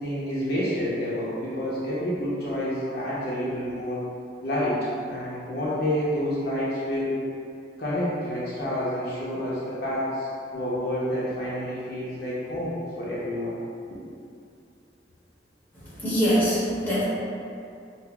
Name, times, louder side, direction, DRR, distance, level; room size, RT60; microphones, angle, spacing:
voice 1, 0.0-4.0 4.4-4.8 5.1-7.2 7.8-13.6, left 1 dB, 60° left, -9 dB, 0.7 m, -29 dB
voice 2, 16.0-17.0, equal, 10° left, -10 dB, 1.1 m, -23 dB
5.6 x 2.0 x 2.3 m, 2.5 s
head